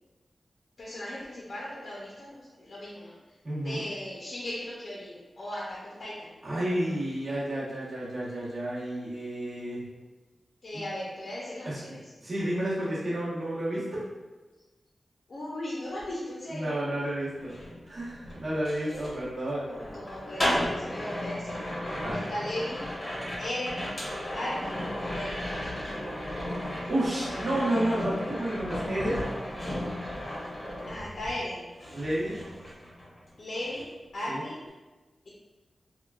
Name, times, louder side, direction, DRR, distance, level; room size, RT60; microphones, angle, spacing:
voice 1, 0.8-3.1 3.6-6.6 10.6-12.0 15.3-16.8 19.7-21.5 22.1-22.8 23.4-23.9 24.3-25.5 30.9-31.6 33.4-33.9 34.1-34.6, left 1 dB, 55° left, -6 dB, 0.6 m, -37 dB
voice 2, 3.4-3.8 6.4-9.9 10.7-10.9 11.6-14.0 16.5-17.5 17.8-19.6 21.3-21.5 22.0-22.3 26.9-29.2 31.9-32.4 34.3-34.4, right 1 dB, 45° right, -9 dB, 1.1 m, -31 dB
sound 1, 17.4-31.5 31.8-33.3 33.5-33.9, left 1 dB, 30° left, 0.9 m, -35 dB
3.6 x 2.3 x 2.3 m, 1.2 s
wide cardioid pair, 120°, 0 cm